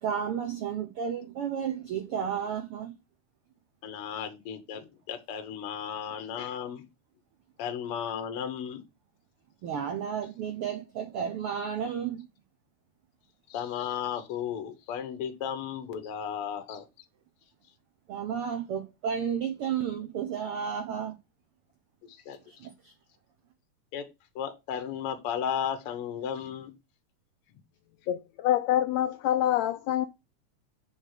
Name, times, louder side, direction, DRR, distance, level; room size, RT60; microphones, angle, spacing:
voice 1, 0.0-2.9 9.6-12.3 18.1-21.1 22.4-22.9, right 8 dB, 85° right, 1.2 m, -32 dB
voice 2, 3.8-6.8 7.6-8.8 13.5-16.9 22.1-22.4 23.9-24.1 24.3-26.7, left 8 dB, 70° left, 1.4 m, -34 dB
voice 3, 28.1-30.1, left 12 dB, 85° left, 1.5 m, -26 dB
7.7 x 3.4 x 6.5 m
omnidirectional pair, 3.7 m